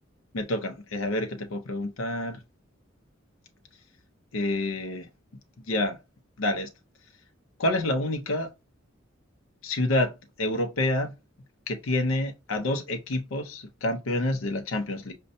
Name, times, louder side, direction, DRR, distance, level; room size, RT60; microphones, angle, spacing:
voice 1, 0.3-2.4 4.3-5.1 5.7-6.0 6.4-6.7 7.6-8.5 9.6-11.1 11.7-15.1, left 1 dB, 85° left, 0.6 m, -28 dB
5.2 x 2.2 x 2.5 m
head